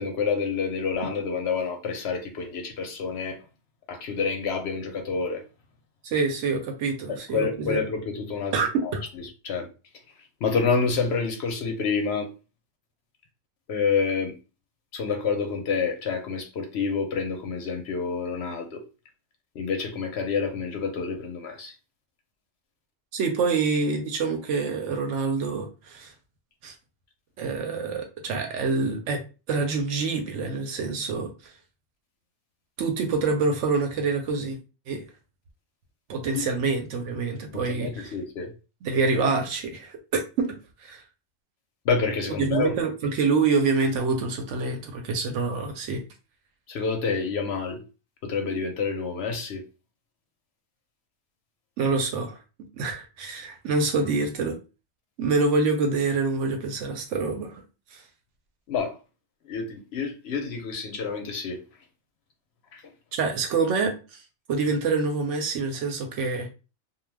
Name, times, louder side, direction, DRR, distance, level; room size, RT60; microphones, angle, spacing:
voice 1, 0.0-3.4 3.9-5.4 7.1-8.5 8.8-8.9 9.4-9.7 10.4-12.3 13.7-14.3 14.9-18.8 19.6-21.7 37.5-38.5 41.9-42.7 46.7-47.8 48.2-49.6 58.7-59.0 59.5-61.6 62.7-62.8, left 5 dB, 65° left, 0.7 m, -28 dB
voice 2, 6.0-7.8 8.5-9.0 23.1-26.1 26.6-26.7 27.4-29.2 29.5-31.3 32.8-34.6 34.9-35.0 36.1-38.1 38.8-40.6 40.8-41.0 42.4-46.0 51.8-52.4 52.8-54.6 55.2-57.6 57.9-58.0 63.1-64.2 64.5-66.5, right 4 dB, 70° right, 0.8 m, -26 dB
2.2 x 2.2 x 3.2 m
omnidirectional pair, 1.4 m